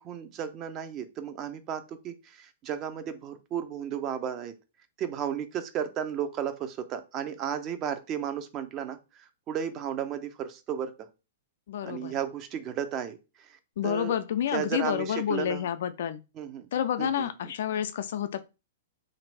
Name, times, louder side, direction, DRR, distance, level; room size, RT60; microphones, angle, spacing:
voice 1, 0.0-4.5 5.0-10.9 11.8-13.6 13.8-14.1 14.5-15.7 16.4-16.7 17.0-17.5, right 8 dB, 30° right, 0.5 m, -34 dB
voice 2, 11.7-12.1 13.8-16.2 16.7-18.4, left 9 dB, 60° left, 0.4 m, -29 dB
2.5 x 2.5 x 3.3 m
figure-of-eight pair, 105°, 0 cm